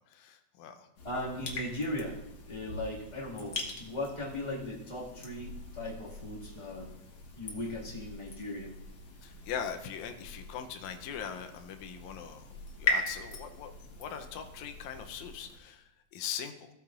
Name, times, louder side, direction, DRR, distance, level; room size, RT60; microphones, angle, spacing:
voice 1, 0.0-0.9 9.2-12.5 12.8-13.7 14.0-16.7, left 8 dB, 75° left, 6 dB, 2.0 m, -41 dB
sound 1, 1.0-15.6, left 3 dB, 45° left, 1.4 m, -41 dB
voice 2, 1.0-2.1 2.5-6.9 7.3-8.7, left 1 dB, 20° left, -5 dB, 1.6 m, -38 dB
16.0 x 8.5 x 2.5 m, 0.91 s
omnidirectional pair, 3.5 m